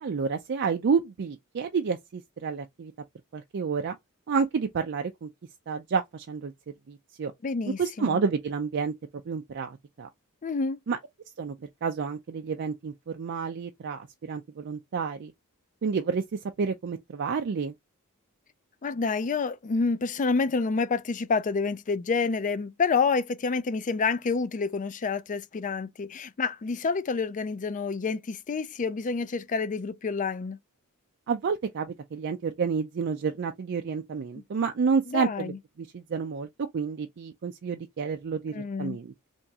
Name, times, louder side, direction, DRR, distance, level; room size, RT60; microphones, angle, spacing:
voice 1, 0.0-2.9 3.3-4.0 4.3-5.3 5.7-6.5 6.9-7.3 7.8-8.9 9.3-10.1 10.9-11.0 11.4-11.5 11.8-15.3 15.8-16.2 16.6-17.7 31.3-35.5 35.8-36.5 36.7-39.3, right 5 dB, 50° right, 0.4 m, -29 dB
voice 2, 7.4-8.2 10.4-10.8 18.8-30.6 35.1-35.6 38.5-39.0, left 4 dB, 35° left, 0.4 m, -28 dB
3.5 x 3.0 x 2.7 m
head